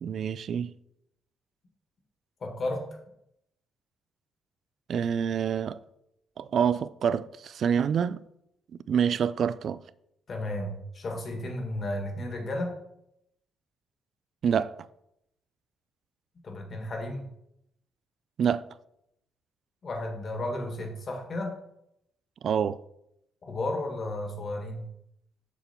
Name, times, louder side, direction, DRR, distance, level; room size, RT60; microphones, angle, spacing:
voice 1, 0.0-0.7 4.9-5.8 6.4-8.2 8.9-9.8 14.4-14.7 18.4-18.6 22.4-22.8, right 7 dB, 55° right, 0.4 m, -26 dB
voice 2, 2.4-2.8 10.3-12.7 16.4-17.3 19.8-21.5 23.4-24.9, left 1 dB, 40° left, 1.7 m, -33 dB
7.0 x 6.7 x 4.3 m
cardioid pair, 120°, 0 cm